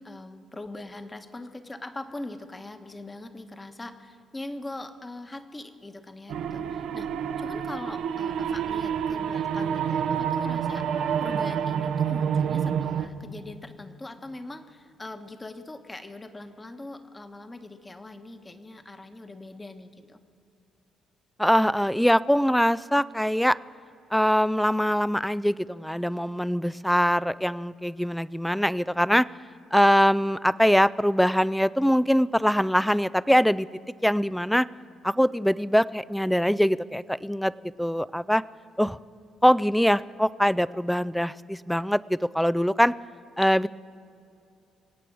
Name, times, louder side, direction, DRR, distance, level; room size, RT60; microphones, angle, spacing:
voice 1, 0.0-7.1 7.4-20.2, left 2 dB, 20° left, 8 dB, 1.2 m, -41 dB
sound 1, 6.3-13.1, right 8 dB, 80° right, 0.8 m, -28 dB
voice 2, 21.4-23.6 24.1-29.3 29.7-33.7 34.0-34.7 35.0-37.5 37.8-38.4 38.8-39.0 39.4-42.9 43.4-43.7, equal, ahead, 18 dB, 0.3 m, -23 dB
24.5 x 8.5 x 6.2 m, 2.7 s
cardioid pair, 90°, 0 cm